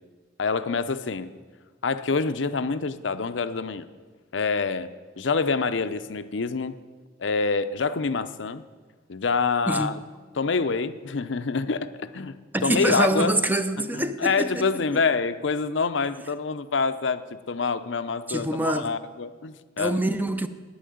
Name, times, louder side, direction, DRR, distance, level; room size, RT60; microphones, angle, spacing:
voice 1, 0.4-1.3 1.8-3.9 4.3-4.9 5.2-6.8 7.2-8.6 9.1-10.0 10.3-12.3 12.6-13.3 13.9-20.0, left 4 dB, 75° left, 0.7 m, -26 dB
voice 2, 12.5-14.7 18.3-18.9 19.8-20.5, right 1 dB, 10° right, 0.6 m, -25 dB
10.5 x 9.4 x 9.3 m
head